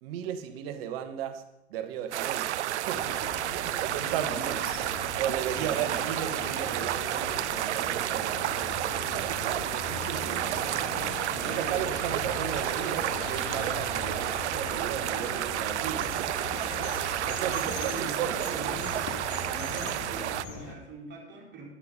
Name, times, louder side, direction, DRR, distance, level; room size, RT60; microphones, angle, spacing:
voice 1, 0.0-4.6 5.2-10.8 11.3-16.2 17.0-18.7, right 10 dB, 55° right, 1.4 m, -36 dB
sound 1, 2.1-20.4, right 13 dB, 75° right, 0.5 m, -31 dB
sound 2, 2.9-20.7, left 4 dB, 45° left, 2.0 m, -40 dB
voice 2, 4.1-4.6 5.6-6.0 17.6-19.0 19.5-21.7, right 3 dB, 30° right, 3.6 m, -42 dB
9.9 x 8.3 x 5.5 m
hypercardioid pair, 95°, 35 cm